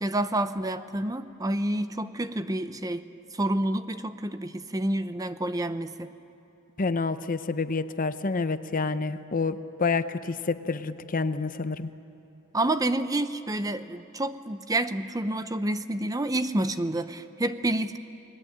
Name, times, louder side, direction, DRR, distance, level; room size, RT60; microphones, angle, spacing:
voice 1, 0.0-6.1 12.5-18.0, right 1 dB, 15° right, 11 dB, 0.7 m, -29 dB
voice 2, 6.8-11.9, left 4 dB, 40° left, 11 dB, 0.8 m, -28 dB
29.5 x 20.0 x 8.8 m, 3.0 s
head